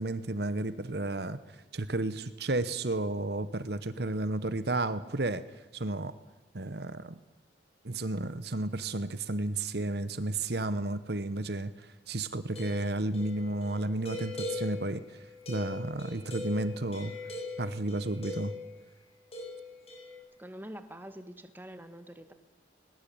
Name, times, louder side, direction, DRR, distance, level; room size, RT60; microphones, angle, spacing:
voice 1, 0.0-1.4 1.7-5.4 5.7-6.1 6.5-7.2 7.8-15.2 15.5-17.1 17.6-18.5, right 2 dB, 60° right, 14 dB, 1.0 m, -32 dB
sound 1, 12.5-18.8 19.3-20.2, left 2 dB, 30° left, 6.9 m, -41 dB
voice 2, 20.4-22.3, equal, 10° right, 9 dB, 1.7 m, -45 dB
21.0 x 21.0 x 8.8 m, 1.1 s
head